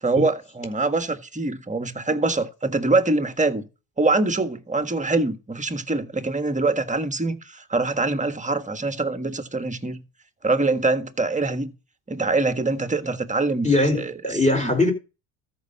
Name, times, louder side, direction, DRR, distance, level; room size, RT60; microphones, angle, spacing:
voice 1, 0.0-3.7 4.0-10.0 10.4-11.7 12.1-13.7 13.9-14.1 14.5-14.7, right 3 dB, 15° right, 1.5 m, -24 dB
voice 2, 13.6-14.9, left 2 dB, 15° left, 4.5 m, -21 dB
13.5 x 5.7 x 5.5 m
supercardioid pair, 85°, 47 cm